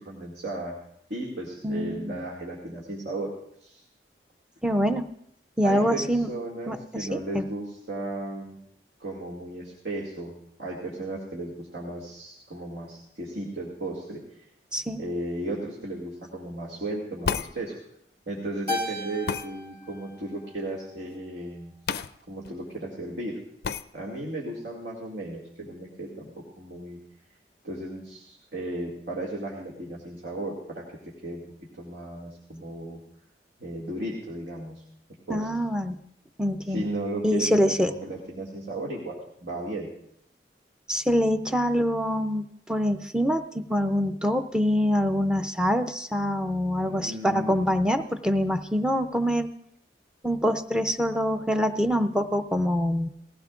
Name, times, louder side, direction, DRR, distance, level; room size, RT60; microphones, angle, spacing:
voice 1, 0.1-0.8 1.1-3.3 3.6-3.8 5.6-8.6 9.0-10.3 10.6-14.2 15.0-17.7 18.3-21.7 22.3-23.4 23.9-26.3 26.6-27.0 27.6-30.8 31.2-31.4 31.8-33.0 33.6-34.8 35.3-35.5 36.6-39.9 46.9-47.7, right 1 dB, 80° right, -4 dB, 2.2 m, -35 dB
voice 2, 1.6-2.2 4.6-5.0 5.6-6.3 6.7-7.5 14.7-15.0 35.3-36.0 36.4-36.9 37.2-37.9 40.9-49.5 50.2-53.1, equal, 5° right, 7 dB, 0.5 m, -25 dB
sound 1, 17.2-17.5 19.3-19.5 21.9-22.1 22.4-22.5 23.6-23.8, left 6 dB, 60° left, 0.4 m, -29 dB
Keyboard (musical), 18.7-21.2, left 1 dB, 30° right, 1.8 m, -36 dB
19.0 x 16.0 x 2.5 m, 0.72 s
head